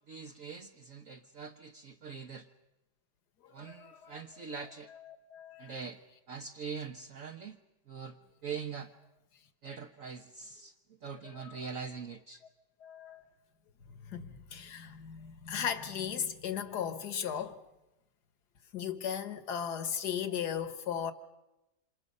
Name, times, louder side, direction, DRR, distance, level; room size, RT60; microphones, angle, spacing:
voice 1, 0.1-2.5 3.5-4.9 5.6-6.0 6.3-7.6 7.9-8.2 8.4-8.9 9.6-12.4, right 6 dB, 55° right, 1.3 m, -43 dB
voice 2, 3.4-4.2 4.6-5.8 11.2-11.8 12.8-13.2 13.9-17.6 18.7-21.1, left 8 dB, 70° left, 1.9 m, -37 dB
28.0 x 27.0 x 5.4 m
omnidirectional pair, 1.8 m